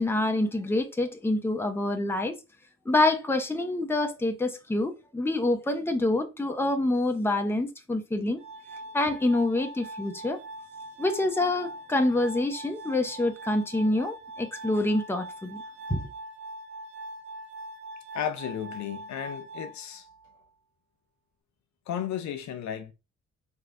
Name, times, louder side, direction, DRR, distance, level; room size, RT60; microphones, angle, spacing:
voice 1, 0.0-2.3 2.9-8.4 8.9-10.4 11.0-15.6 15.9-16.0, left 2 dB, 10° left, 0.7 m, -26 dB
Glass, 8.4-20.4, right 1 dB, 20° right, 1.7 m, -42 dB
voice 2, 18.1-20.1 21.9-22.9, left 9 dB, 70° left, 0.6 m, -34 dB
4.6 x 3.3 x 2.5 m
cardioid pair, 90°, 30 cm